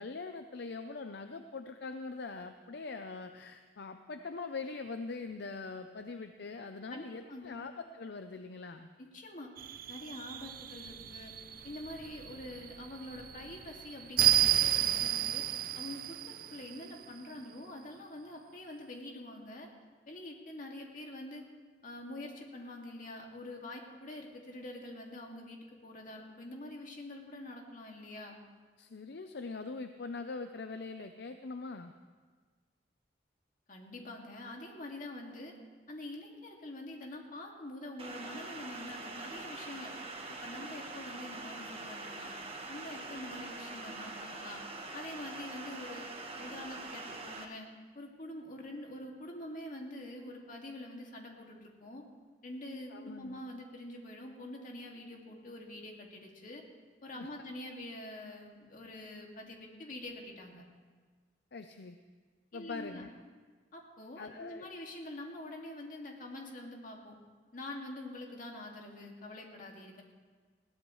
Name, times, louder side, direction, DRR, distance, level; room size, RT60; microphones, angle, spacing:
voice 1, 0.0-8.9 28.8-31.9 52.9-53.4 57.2-57.3 61.5-62.0 62.5-63.1 64.2-64.7, left 4 dB, 65° left, 8 dB, 0.6 m, -42 dB
voice 2, 6.9-7.6 9.0-9.5 9.9-11.3 11.6-15.4 15.7-19.7 20.1-21.4 21.8-28.4 33.7-35.5 35.9-39.9 40.3-42.3 42.7-44.6 44.9-46.1 46.4-47.7 47.9-52.1 52.4-56.6 57.0-60.6 62.5-63.1 63.7-67.2 67.5-70.0, left 1 dB, 50° left, 0 dB, 2.3 m, -45 dB
sound 1, 9.6-17.0, right 12 dB, 55° right, 0.5 m, -32 dB
sound 2, 38.0-47.4, right 3 dB, 35° right, 1.4 m, -44 dB
21.0 x 17.0 x 3.2 m, 1.5 s
head